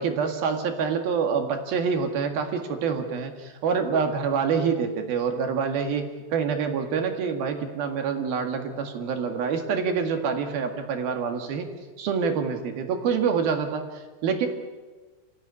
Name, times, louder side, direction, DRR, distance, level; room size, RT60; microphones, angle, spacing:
voice 1, 0.0-11.7 12.0-14.5, right 6 dB, 65° right, 5 dB, 3.6 m, -26 dB
28.0 x 15.5 x 9.7 m, 1.3 s
omnidirectional pair, 5.0 m